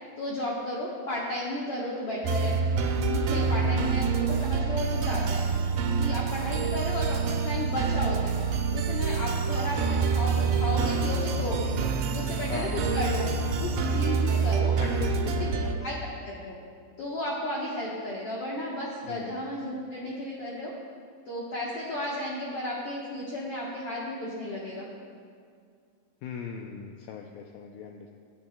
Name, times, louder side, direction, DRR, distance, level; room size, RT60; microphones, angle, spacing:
voice 1, 0.2-2.5 3.0-5.4 5.8-8.4 8.7-11.7 12.1-13.3 13.6-14.7 15.4-15.5 15.8-15.9 16.2-16.6 17.0-20.7 21.3-24.9, left 1 dB, 60° left, -5 dB, 1.6 m, -33 dB
sound 1, 2.2-15.8, right 5 dB, 85° right, 2.5 m, -27 dB
voice 2, 12.5-12.9 14.8-15.9 19.0-19.3 26.2-28.1, left 6 dB, 80° left, 3 dB, 2.3 m, -39 dB
23.0 x 8.7 x 2.2 m, 2.2 s
omnidirectional pair, 4.2 m